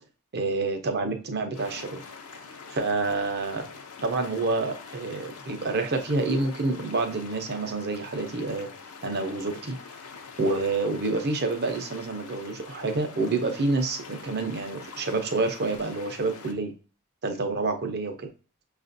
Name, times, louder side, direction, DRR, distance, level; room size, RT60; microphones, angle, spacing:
voice 1, 0.3-2.0 2.7-3.7 4.0-8.7 9.0-9.8 10.4-16.7 17.2-18.3, right 3 dB, 50° right, 6 dB, 0.6 m, -28 dB
sound 1, 1.5-16.5, left 5 dB, 80° left, 0.6 m, -45 dB
5.7 x 2.4 x 2.6 m, 0.38 s
head